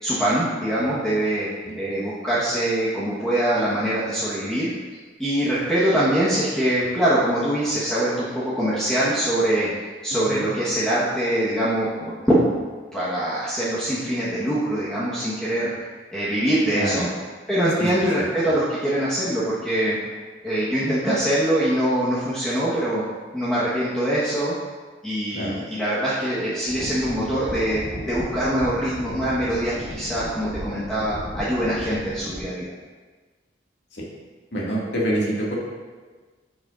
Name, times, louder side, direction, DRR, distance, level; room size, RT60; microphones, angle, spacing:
voice 1, 0.0-1.5 1.7-4.7 5.2-12.4 12.9-17.1 17.5-20.0 20.4-23.0 23.3-24.5 25.0-32.7, right 1 dB, 5° left, -11 dB, 1.2 m, -23 dB
voice 2, 10.1-10.4 16.7-17.1 18.2-18.3 20.8-21.1 25.3-25.6 33.9-34.1 34.5-35.5, right 1 dB, 70° left, -5 dB, 2.0 m, -27 dB
sound 1, 26.7-32.4, equal, 10° right, 2.4 m, -35 dB
10.5 x 6.3 x 2.5 m, 1.4 s
head